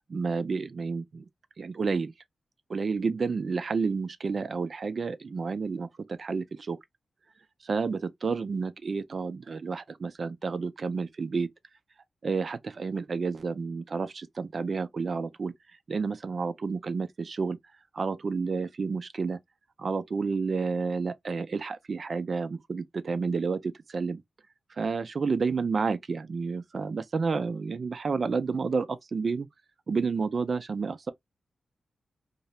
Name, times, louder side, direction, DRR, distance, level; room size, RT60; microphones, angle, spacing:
voice 1, 0.1-1.3 1.6-2.1 2.7-6.8 7.6-11.5 12.2-15.5 15.9-17.6 17.9-19.4 19.8-24.2 24.7-29.5 29.9-31.1, right 4 dB, 55° right, 0.4 m, -30 dB
2.4 x 2.1 x 2.8 m
cardioid pair, 70°, 0 cm